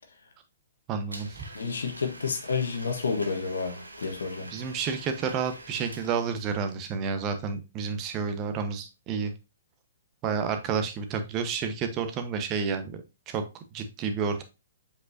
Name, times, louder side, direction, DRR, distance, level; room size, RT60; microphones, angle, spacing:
voice 1, 0.9-1.4 4.5-9.3 10.2-13.0 13.3-13.4 13.7-14.4, right 5 dB, 25° right, 1.1 m, -30 dB
Domestic sounds home sounds, 1.1-6.8, right 2 dB, 80° right, 1.3 m, -46 dB
voice 2, 1.5-4.5, left 5 dB, 65° left, 1.4 m, -30 dB
8.0 x 5.1 x 2.7 m
figure-of-eight pair, 120°, 0 cm